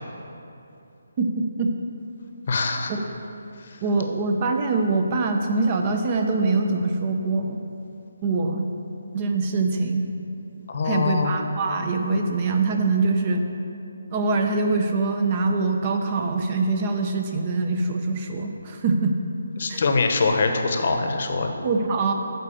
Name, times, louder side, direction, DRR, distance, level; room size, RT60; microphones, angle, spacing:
voice 1, 1.2-1.7 2.9-3.0 3.8-7.6 8.2-8.7 9.1-10.0 10.8-13.4 14.1-19.2 19.7-19.8 21.6-22.1, right 3 dB, 30° right, 4 dB, 0.7 m, -23 dB
voice 2, 2.5-2.9 3.6-3.8 10.7-11.3 19.6-21.5, left 4 dB, 50° left, 5 dB, 0.9 m, -23 dB
9.9 x 4.1 x 7.0 m, 2.7 s
hypercardioid pair, 160°, 0 cm